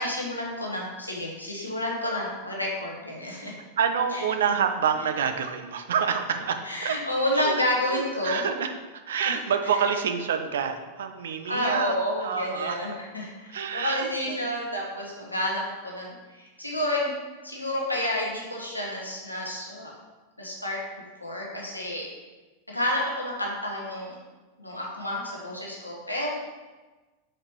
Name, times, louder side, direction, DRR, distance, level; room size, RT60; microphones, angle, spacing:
voice 1, 0.0-3.5 4.1-4.2 6.6-8.5 9.3-9.4 11.5-17.1 17.4-19.9 20.4-20.8 21.2-22.1 22.7-24.1 24.6-26.3, left 1 dB, 85° left, -3 dB, 1.2 m, -30 dB
voice 2, 3.8-7.0 7.3-7.6 7.9-13.0 13.5-14.4, right 7 dB, 60° right, 7 dB, 0.5 m, -28 dB
4.9 x 4.3 x 4.5 m, 1.2 s
figure-of-eight pair, 90°, 0 cm